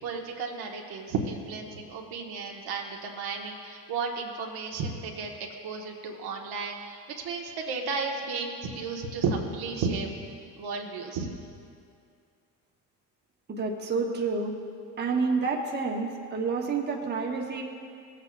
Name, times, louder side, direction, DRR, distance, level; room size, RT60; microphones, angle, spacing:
voice 1, 0.0-10.1 10.6-11.3, right 4 dB, 60° right, 1 dB, 1.2 m, -33 dB
voice 2, 13.5-14.5 15.0-17.6, right 4 dB, 25° right, 0 dB, 1.1 m, -29 dB
16.5 x 8.1 x 2.3 m, 2.4 s
supercardioid pair, 85°, 42 cm